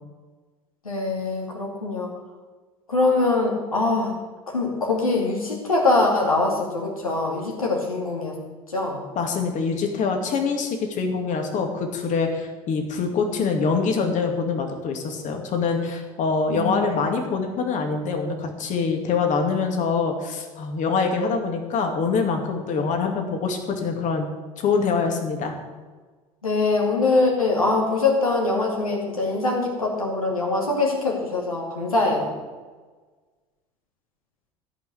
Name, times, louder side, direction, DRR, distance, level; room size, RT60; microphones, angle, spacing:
voice 1, 0.8-2.1 2.9-4.1 4.5-8.4 8.7-9.0 16.5-16.7 26.4-32.3, left 3 dB, 85° left, -2 dB, 2.7 m, -23 dB
voice 2, 9.2-24.3 24.6-25.6, left 5 dB, 45° left, 4 dB, 2.4 m, -24 dB
14.5 x 5.8 x 8.2 m, 1.4 s
figure-of-eight pair, 65°, 18 cm